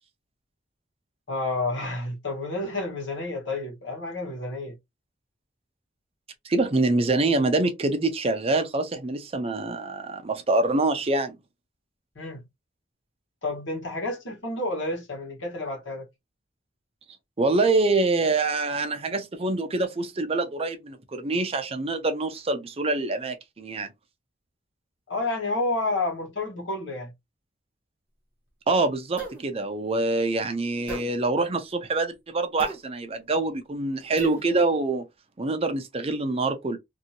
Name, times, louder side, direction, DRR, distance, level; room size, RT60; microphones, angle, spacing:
voice 1, 1.3-4.8 12.1-12.5 13.4-16.1 25.1-27.1, left 2 dB, 90° left, 1.4 m, -30 dB
voice 2, 6.4-11.4 17.4-23.9 28.7-35.0 35.4-36.8, right 2 dB, 30° right, 0.5 m, -25 dB
sound 1, 29.2-29.4 30.9-31.1 32.6-32.8 34.2-34.4, right 1 dB, 10° right, 1.1 m, -36 dB
2.7 x 2.7 x 2.8 m
head